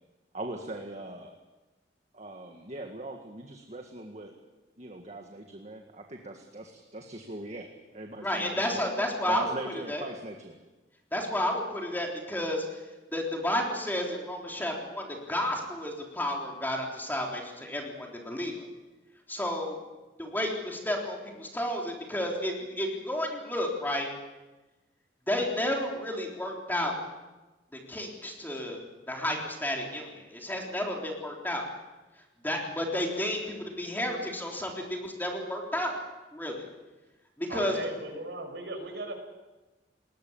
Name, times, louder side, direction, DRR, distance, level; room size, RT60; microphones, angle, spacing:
voice 1, 0.3-1.3 2.1-4.3 4.8-10.6, right 2 dB, 40° right, 3 dB, 1.9 m, -40 dB
voice 2, 8.2-9.5 9.9-10.0 11.1-12.6 13.1-18.7 19.3-19.8 20.2-24.1 25.3-27.0 27.9-28.8 29.1-31.7 32.4-36.0 36.3-36.6 37.4-37.8, left 1 dB, 10° left, 0 dB, 3.6 m, -31 dB
voice 3, 37.5-39.1, right 2 dB, 70° right, 4 dB, 5.7 m, -37 dB
20.0 x 19.5 x 8.8 m, 1.1 s
head